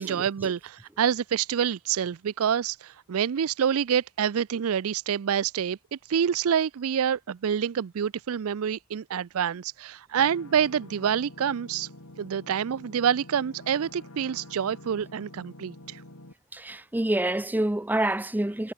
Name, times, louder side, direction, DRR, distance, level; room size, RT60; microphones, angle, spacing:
voice 1, 0.0-5.8 6.1-11.9 12.2-16.0, right 8 dB, 70° right, 0.4 m, -27 dB
sound 1, 10.2-16.3, left 1 dB, 75° left, 6.3 m, -47 dB
voice 2, 16.5-18.7, right 1 dB, 10° right, 0.6 m, -27 dB
head